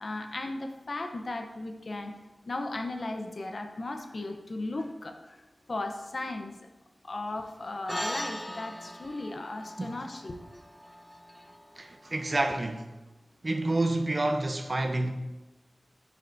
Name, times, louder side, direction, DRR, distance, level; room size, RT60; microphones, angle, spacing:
voice 1, 0.0-2.1 2.5-5.1 5.7-6.6 7.0-10.4, left 2 dB, 60° left, 0.8 m, -36 dB
sound 1, 7.9-12.5, equal, ahead, 0.4 m, -40 dB
voice 2, 11.8-12.9 13.4-15.1, right 2 dB, 40° right, 0.7 m, -28 dB
9.4 x 7.9 x 2.7 m
wide cardioid pair, 75°, 0 cm